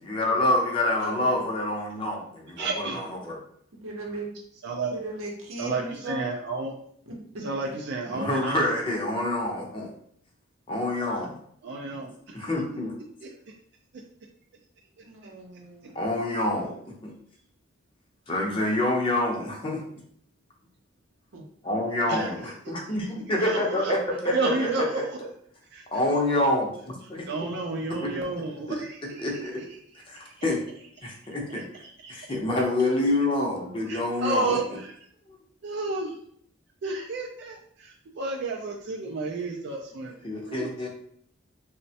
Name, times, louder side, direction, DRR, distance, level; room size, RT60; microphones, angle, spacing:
voice 1, 0.0-3.4 8.1-9.9 10.7-11.4 12.3-12.9 15.9-17.1 18.3-19.8 21.6-25.0 25.9-27.3 29.2-29.6 30.1-30.6 31.0-31.6 32.1-34.6 35.3-35.4 40.2-40.9, left 1 dB, 25° left, -1 dB, 0.5 m, -27 dB
voice 2, 1.0-1.4 3.8-4.3 4.9-6.3 7.1-7.4 15.0-16.0 21.3-21.4 40.4-40.5, right 2 dB, 85° right, -1 dB, 0.7 m, -38 dB
voice 3, 2.6-3.0 4.6-5.0 5.6-6.7 7.4-8.8 11.6-12.6 13.2-13.3 15.0-15.1 22.1-22.7 23.4-23.9 24.3-25.2 25.7-25.8 27.2-29.2 29.6-29.8 30.2-30.3 31.0-31.2 31.8-32.2 33.9-35.0 35.6-36.2 36.8-40.1 40.5-40.9, right 3 dB, 55° right, 0 dB, 0.3 m, -31 dB
3.1 x 2.1 x 2.7 m, 0.65 s
head